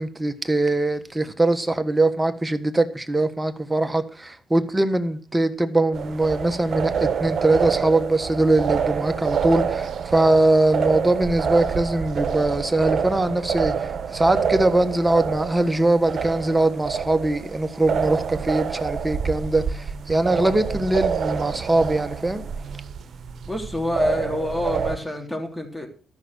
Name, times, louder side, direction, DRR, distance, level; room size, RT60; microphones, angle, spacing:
voice 1, 0.0-22.4, right 2 dB, 15° right, 1.4 m, -22 dB
sound 1, 5.9-25.0, right 6 dB, 60° right, 1.1 m, -27 dB
voice 2, 23.5-25.9, left 1 dB, 10° left, 3.2 m, -27 dB
13.5 x 6.0 x 6.5 m
cardioid pair, 80°, 0 cm